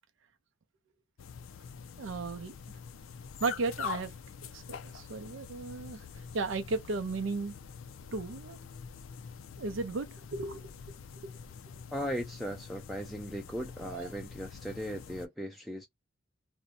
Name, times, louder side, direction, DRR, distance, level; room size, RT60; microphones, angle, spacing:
sound 1, 1.2-15.3, left 6 dB, 90° left, 0.4 m, -45 dB
voice 1, 2.0-2.5 3.4-4.1 4.4-6.0 6.3-7.5 8.1-8.6 9.6-10.7 11.2-11.3 13.8-14.1, right 3 dB, 75° right, 0.5 m, -35 dB
voice 2, 11.9-15.9, equal, ahead, 0.3 m, -37 dB
2.6 x 2.1 x 2.5 m
head